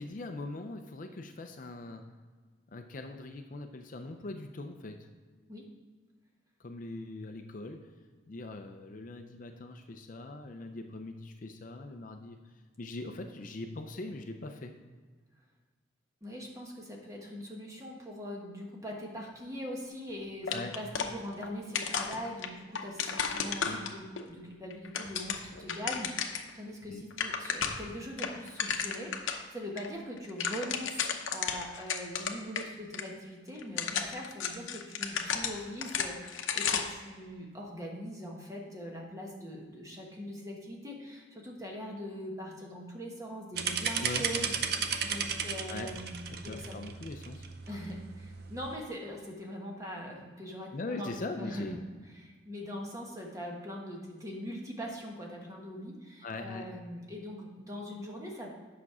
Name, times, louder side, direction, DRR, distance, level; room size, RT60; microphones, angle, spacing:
voice 1, 0.0-2.0 2.7-5.0 6.6-7.8 8.3-12.4 12.8-14.7 20.5-20.7 23.6-23.8 26.9-27.0 44.0-44.2 45.7-45.9 46.3-47.8 50.7-51.8 56.2-56.7, left 2 dB, 45° left, 6 dB, 0.5 m, -41 dB
voice 2, 16.2-46.8 47.7-51.1 51.4-51.8 52.1-58.5, equal, 15° right, -1 dB, 1.3 m, -42 dB
sound 1, 20.5-21.5 21.7-24.2 24.7-26.5 26.8-26.9 27.1-27.9 28.2-29.4 29.8-29.9 30.2-32.6 32.9-33.0 33.6-37.0, left 6 dB, 85° left, 0.7 m, -33 dB
sound 2, 43.6-48.8, right 6 dB, 55° right, 0.6 m, -35 dB
8.4 x 6.0 x 4.8 m, 1.5 s
head